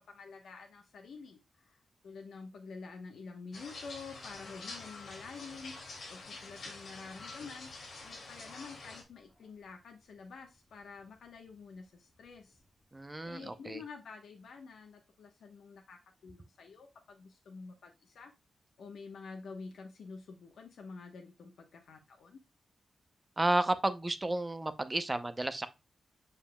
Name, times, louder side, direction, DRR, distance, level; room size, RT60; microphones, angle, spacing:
voice 1, 0.0-5.8 6.1-7.7 8.0-12.6 13.2-18.3 18.8-22.4, left 4 dB, 85° left, 1.0 m, -49 dB
sound 1, 3.5-9.0, left 3 dB, 55° left, 2.3 m, -47 dB
sound 2, 4.2-13.4, left 3 dB, 25° left, 1.8 m, -60 dB
voice 2, 12.9-13.8 23.4-25.7, right 2 dB, 15° right, 0.6 m, -32 dB
7.2 x 6.9 x 2.2 m
wide cardioid pair, 170°, 0 cm